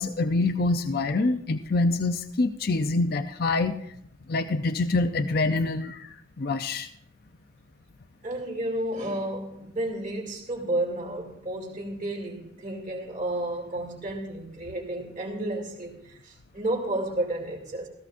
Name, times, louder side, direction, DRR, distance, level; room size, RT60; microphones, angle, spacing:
voice 1, 0.0-3.7 4.3-6.1 6.4-6.9, left 3 dB, 50° left, 0.6 m, -25 dB
voice 2, 8.2-17.9, right 1 dB, 40° right, 2.7 m, -31 dB
17.0 x 14.5 x 2.6 m
head